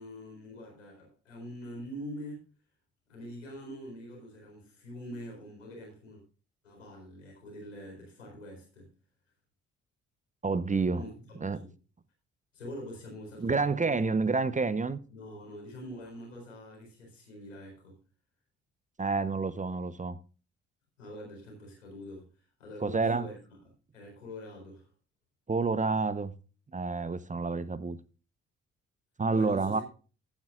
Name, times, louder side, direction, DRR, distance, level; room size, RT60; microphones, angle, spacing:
voice 1, 0.0-2.5 3.1-6.2 6.6-8.9 11.0-11.8 12.5-14.0 15.1-18.0 21.0-22.3 22.6-23.4 23.9-24.9 29.3-29.8, equal, 85° left, 4.2 m, -44 dB
voice 2, 10.4-11.0 11.4-11.6 13.4-15.0 19.0-20.2 22.8-23.3 25.5-26.3 26.7-28.0 29.2-29.8, right 4 dB, 20° right, 0.8 m, -28 dB
14.5 x 9.7 x 2.5 m
figure-of-eight pair, 45°, 36 cm